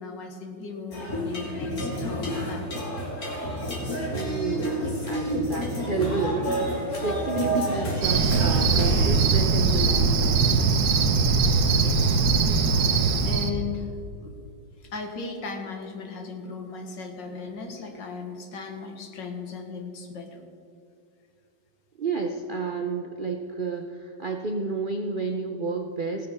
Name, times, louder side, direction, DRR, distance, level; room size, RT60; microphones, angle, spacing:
voice 1, 0.0-2.7 11.7-12.3 13.2-13.9 14.2-14.4 14.8-20.4, left 5 dB, 70° left, 4 dB, 2.2 m, -37 dB
sound 1, 0.9-9.2, equal, 50° left, 3.0 m, -30 dB
voice 2, 4.1-6.7 7.0-10.5 22.0-26.3, right 4 dB, 80° right, 4 dB, 0.4 m, -30 dB
Cricket, 8.0-13.5, right 4 dB, 60° right, 1.3 m, -21 dB
17.0 x 7.0 x 6.7 m, 2.5 s
omnidirectional pair, 2.1 m